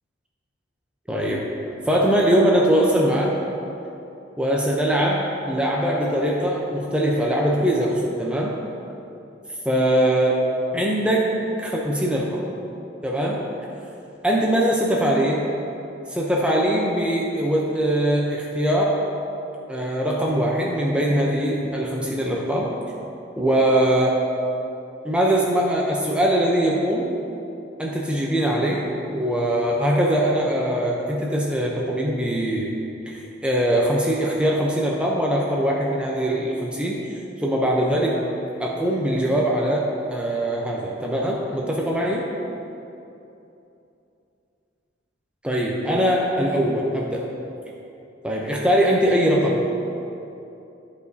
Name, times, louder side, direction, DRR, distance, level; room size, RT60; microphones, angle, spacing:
voice 1, 1.1-1.5 1.8-3.4 4.4-8.5 9.7-10.3 10.7-11.3 11.6-12.5 13.0-13.4 14.2-15.5 16.1-19.0 19.7-22.7 23.4-24.2 25.0-27.1 27.8-28.8 29.1-32.7 33.1-37.0 37.4-38.2 38.6-42.2 45.4-47.2 48.2-49.6, right 1 dB, 5° right, -3 dB, 0.5 m, -22 dB
13.5 x 4.9 x 2.7 m, 2.8 s
head